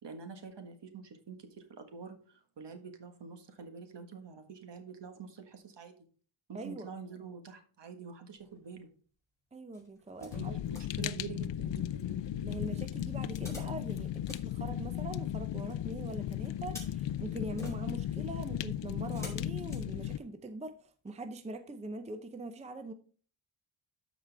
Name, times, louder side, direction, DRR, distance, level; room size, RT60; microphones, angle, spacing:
voice 1, 0.0-5.9 6.5-8.9 10.2-12.8, right 6 dB, 60° right, 1.6 m, -47 dB
voice 2, 6.5-6.9 9.5-10.5 12.4-22.9, right 2 dB, 15° right, 0.6 m, -42 dB
sound 1, 8.3-8.9 9.7-10.9 13.2-15.4 16.4-20.6 21.1-21.2, left 1 dB, 5° left, 4.3 m, -52 dB
Fire, 10.3-20.2, left 12 dB, 65° left, 0.5 m, -36 dB
13.0 x 5.0 x 3.4 m
wide cardioid pair, 135°, 48 cm